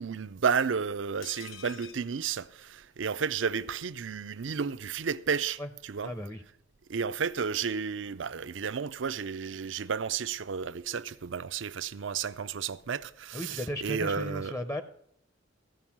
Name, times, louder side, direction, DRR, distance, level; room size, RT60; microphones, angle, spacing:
voice 1, 0.0-6.1 6.9-14.5, right 6 dB, 70° right, 0.5 m, -32 dB
sound 1, 1.2-3.2 3.5-3.6 3.8-4.0, left 8 dB, 85° left, 0.7 m, -49 dB
voice 2, 6.0-6.4 13.3-14.8, left 1 dB, 15° left, 0.7 m, -35 dB
15.0 x 5.4 x 7.2 m
head